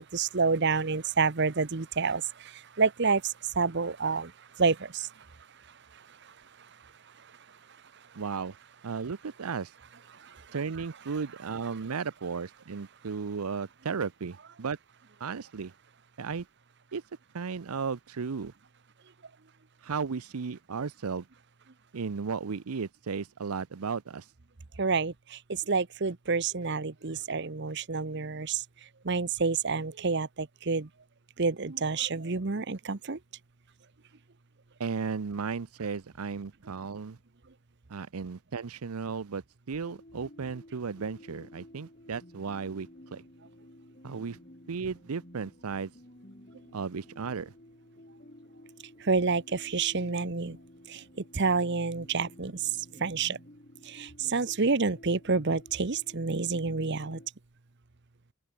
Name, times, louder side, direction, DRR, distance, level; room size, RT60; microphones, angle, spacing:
voice 1, 0.0-2.2 2.8-3.2 3.6-4.3 4.6-5.1 24.8-25.4 25.7-28.6 29.0-30.9 31.4-33.2 49.1-50.6 50.9-51.0 51.3-52.6 53.0-53.4 53.9-57.2, right 4 dB, 50° right, 0.9 m, -28 dB
voice 2, 8.1-8.6 8.8-9.7 10.5-14.8 15.2-15.7 16.2-16.5 16.9-17.0 17.3-18.5 19.8-21.3 21.9-24.2 34.8-37.2 37.9-43.2 44.0-44.4 44.7-45.9 46.7-47.5, right 5 dB, 85° right, 0.6 m, -35 dB
sound 1, 39.8-57.3, left 1 dB, 35° left, 2.6 m, -53 dB
open air
head